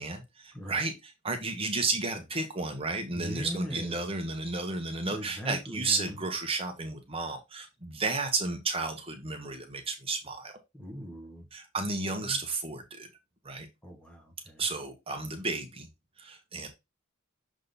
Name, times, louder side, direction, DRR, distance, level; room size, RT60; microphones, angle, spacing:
voice 1, 0.0-10.5 11.5-13.1 13.4-13.7 14.6-15.9 16.2-16.7, right 3 dB, 30° right, 1.1 m, -33 dB
voice 2, 0.5-0.9 3.1-4.1 5.1-6.2 10.7-11.5 12.1-12.4 13.8-14.6, equal, 5° left, 1.2 m, -40 dB
6.7 x 3.8 x 4.0 m
head